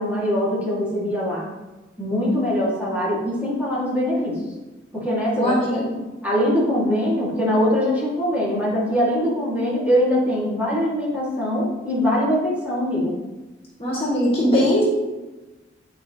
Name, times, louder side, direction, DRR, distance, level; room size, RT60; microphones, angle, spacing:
voice 1, 0.0-1.5 2.0-4.4 4.9-5.9 6.2-13.1, equal, 10° right, -8 dB, 2.5 m, -22 dB
voice 2, 5.3-5.9 13.8-14.8, equal, 30° left, -6 dB, 2.1 m, -20 dB
9.6 x 4.6 x 3.2 m, 1.1 s
head